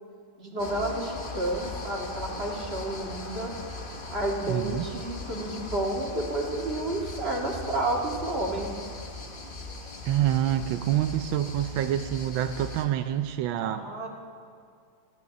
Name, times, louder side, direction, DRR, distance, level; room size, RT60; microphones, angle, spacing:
voice 1, 0.4-3.5 4.1-8.7 10.6-10.7 13.6-14.1, right 1 dB, 30° right, -1 dB, 2.1 m, -31 dB
sound 1, 0.6-12.9, left 2 dB, 35° left, 1.1 m, -39 dB
voice 2, 4.5-4.9 10.0-13.8, right 11 dB, 80° right, 8 dB, 1.4 m, -27 dB
23.0 x 15.0 x 4.0 m, 2.3 s
omnidirectional pair, 2.1 m